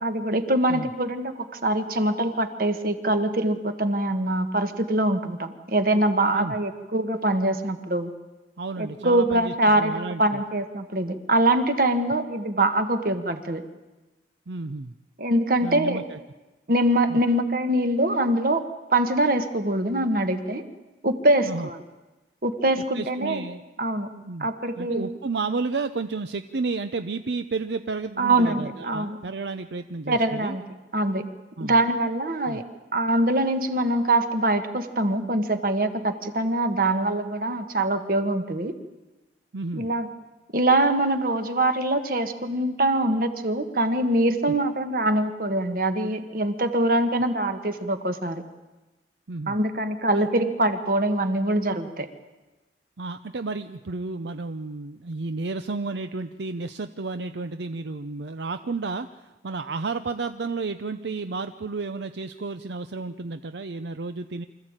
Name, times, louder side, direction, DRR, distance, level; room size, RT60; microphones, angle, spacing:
voice 1, 0.0-8.1 8.8-13.6 15.2-16.0 16.7-18.6 18.9-20.6 21.0-21.8 22.4-23.4 23.8-24.1 24.4-25.1 28.2-29.2 30.1-30.6 30.9-31.2 31.6-32.6 32.9-38.7 39.7-40.1 40.5-48.4 49.5-52.1, right 1 dB, 50° right, 8 dB, 1.6 m, -23 dB
voice 2, 8.6-10.4 14.5-14.9 15.6-16.2 17.1-17.2 21.4-21.7 22.9-23.6 24.2-24.5 24.8-30.6 31.6-31.8 32.4-32.6 39.5-39.9 49.3-49.6 50.1-50.3 53.0-64.5, right 3 dB, 75° right, 10 dB, 0.6 m, -32 dB
25.0 x 14.5 x 8.9 m, 1.1 s
head